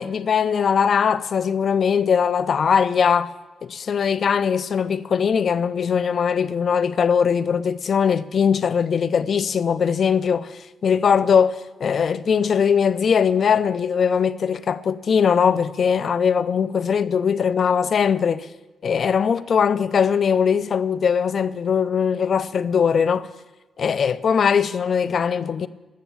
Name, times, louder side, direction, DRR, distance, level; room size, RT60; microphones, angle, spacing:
voice 1, 0.0-3.3 3.7-10.5 10.8-18.5 18.8-23.3 23.8-25.7, left 7 dB, 55° left, 0.5 m, -20 dB
14.0 x 6.7 x 8.6 m
cardioid pair, 75°, 0 cm